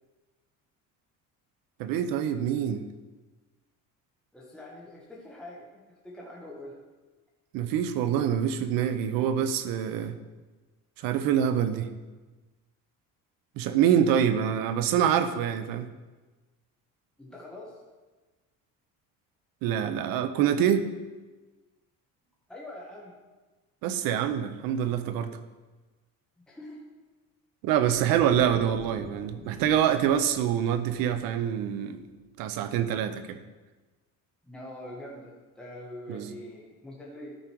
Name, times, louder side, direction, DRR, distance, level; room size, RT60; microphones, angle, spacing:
voice 1, 1.8-2.8 7.5-10.2 11.0-11.9 13.6-15.9 19.6-20.9 23.8-25.4 27.6-32.0 32.4-33.4 36.1-36.3, right 9 dB, 85° right, 11 dB, 0.8 m, -25 dB
voice 2, 4.3-6.8 17.2-17.8 22.5-23.2 26.4-26.8 34.4-37.4, left 1 dB, ahead, -4 dB, 1.3 m, -44 dB
sound 1, 27.9-31.6, right 3 dB, 20° right, 0.9 m, -47 dB
13.0 x 5.0 x 4.6 m, 1.2 s
cardioid pair, 145°, 34 cm